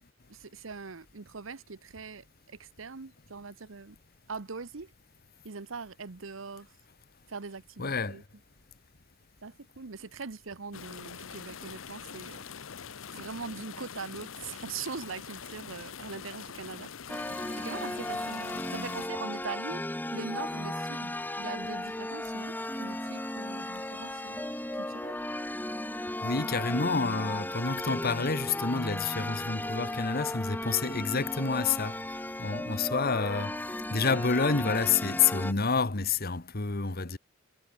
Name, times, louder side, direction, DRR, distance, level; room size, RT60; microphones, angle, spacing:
voice 1, 0.3-4.0 4.3-4.9 5.4-6.7 7.3-8.2 9.4-12.5 13.1-16.9 17.6-19.9 20.1-24.4 24.7-25.1, right 4 dB, 75° right, 1.0 m, -41 dB
voice 2, 7.8-8.2 26.2-32.0 32.4-33.6 33.9-37.2, left 5 dB, 50° left, 1.5 m, -28 dB
sound 1, 10.7-19.1, left 7 dB, 80° left, 0.9 m, -44 dB
sound 2, 17.1-35.5, left 1 dB, 10° left, 1.9 m, -35 dB
head